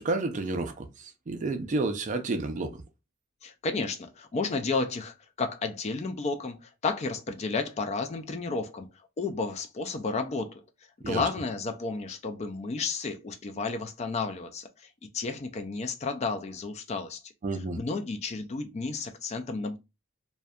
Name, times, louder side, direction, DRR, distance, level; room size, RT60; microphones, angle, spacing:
voice 1, 0.0-2.8 11.0-11.2 17.4-17.8, right 3 dB, 40° right, 0.4 m, -30 dB
voice 2, 3.4-10.6 11.1-14.9 15.1-19.8, left 4 dB, 35° left, 0.3 m, -32 dB
2.6 x 2.1 x 2.3 m
head